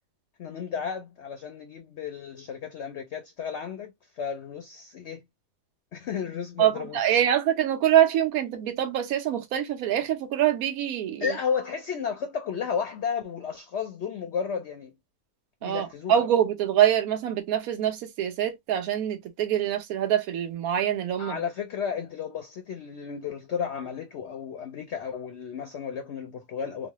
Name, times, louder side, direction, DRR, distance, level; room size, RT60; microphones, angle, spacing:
voice 1, 0.4-5.2 5.9-7.2 11.2-14.9 15.6-16.2 21.2-26.9, left 7 dB, 65° left, 0.7 m, -33 dB
voice 2, 6.6-11.4 15.6-21.4, right 10 dB, 70° right, 1.2 m, -25 dB
3.1 x 2.1 x 2.9 m
omnidirectional pair, 1.7 m